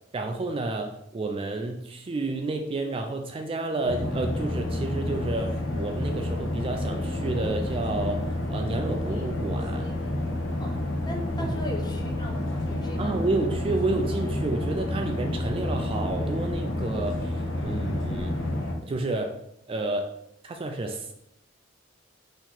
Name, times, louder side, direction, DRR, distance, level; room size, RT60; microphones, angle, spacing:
voice 1, 0.1-8.2 8.5-9.9 11.4-11.5 13.0-18.4 18.8-19.3 19.7-20.1 20.4-21.1, right 2 dB, 30° right, 4 dB, 0.3 m, -30 dB
sound 1, 3.8-18.7, left 1 dB, 70° left, 1.0 m, -29 dB
voice 2, 10.4-13.3, left 1 dB, 20° left, 1 dB, 0.7 m, -38 dB
4.4 x 2.9 x 3.8 m, 0.80 s
head